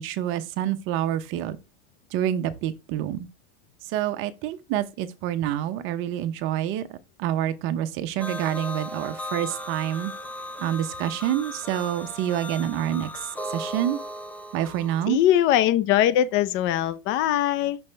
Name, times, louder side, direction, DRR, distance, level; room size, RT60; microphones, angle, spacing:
voice 1, 0.0-1.6 2.1-3.3 3.9-10.1 10.6-13.1 13.5-14.0 14.5-15.2, right 11 dB, 40° right, 0.8 m, -27 dB
sound 1, 8.2-15.0, equal, 5° left, 0.7 m, -36 dB
voice 2, 15.1-17.8, left 12 dB, 40° left, 0.7 m, -21 dB
5.6 x 5.5 x 3.3 m
supercardioid pair, 135°, 30 cm